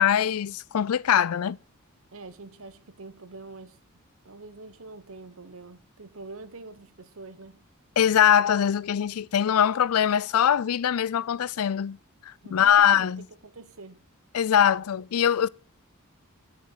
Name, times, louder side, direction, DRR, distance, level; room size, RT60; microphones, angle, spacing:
voice 1, 0.0-1.6 8.0-12.0 12.2-13.2 14.3-15.5, left 9 dB, 85° left, 0.4 m, -22 dB
voice 2, 2.1-3.8 4.2-7.6 12.4-13.1 13.4-14.0, right 3 dB, 70° right, 1.1 m, -45 dB
9.6 x 7.2 x 6.6 m
head